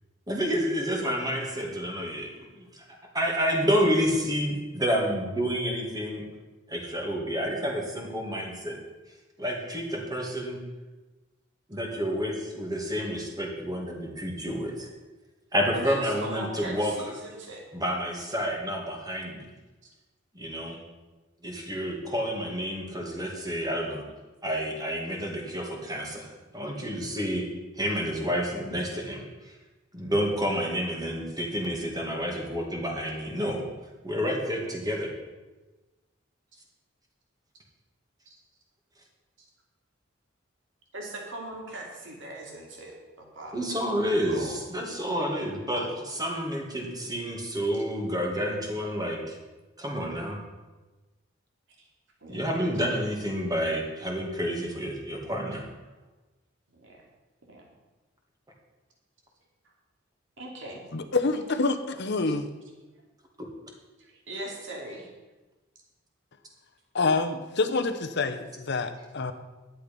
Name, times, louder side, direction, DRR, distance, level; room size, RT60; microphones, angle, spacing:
voice 1, 0.3-2.9 3.1-6.2 6.7-8.8 9.4-10.6 11.7-14.9 15.5-16.9 17.7-19.5 20.3-20.8 21.4-24.0 24.4-27.5 27.8-29.6 29.9-33.6 34.0-35.1 43.5-49.4 49.8-50.4 52.3-55.7 63.4-63.5, equal, 20° right, 0 dB, 2.2 m, -29 dB
voice 2, 15.7-17.6 19.8-19.9 40.9-43.5 44.3-44.6 45.7-45.9 51.8-51.9 52.2-52.5 56.7-57.0 57.5-57.6 60.4-60.9 64.0-65.1, right 1 dB, 65° right, -1 dB, 3.0 m, -40 dB
voice 3, 60.9-62.5 66.9-69.3, left 3 dB, 60° left, 9 dB, 0.9 m, -27 dB
11.5 x 8.7 x 5.4 m, 1.2 s
head